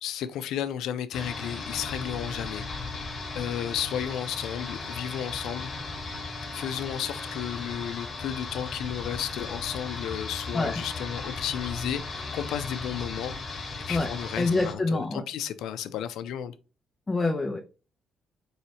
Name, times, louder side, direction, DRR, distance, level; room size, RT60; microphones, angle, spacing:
voice 1, 0.0-5.7 6.5-16.5, left 10 dB, 85° left, 0.4 m, -33 dB
sound 1, 1.1-14.7, left 3 dB, 40° left, 1.2 m, -36 dB
voice 2, 14.4-15.2 17.1-17.6, left 3 dB, 20° left, 0.6 m, -26 dB
4.1 x 3.1 x 2.9 m
cardioid pair, 90°, 0 cm